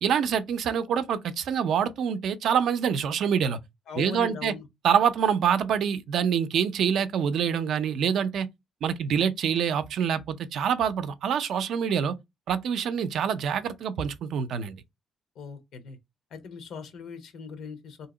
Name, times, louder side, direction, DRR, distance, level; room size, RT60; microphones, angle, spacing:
voice 1, 0.0-3.6 4.0-4.5 4.8-8.5 8.8-12.1 12.5-14.8, right 8 dB, 70° right, 0.5 m, -26 dB
voice 2, 3.9-4.7 15.4-16.0 16.3-18.1, left 6 dB, 75° left, 0.9 m, -39 dB
2.8 x 2.8 x 3.8 m
cardioid pair, 90°, 0 cm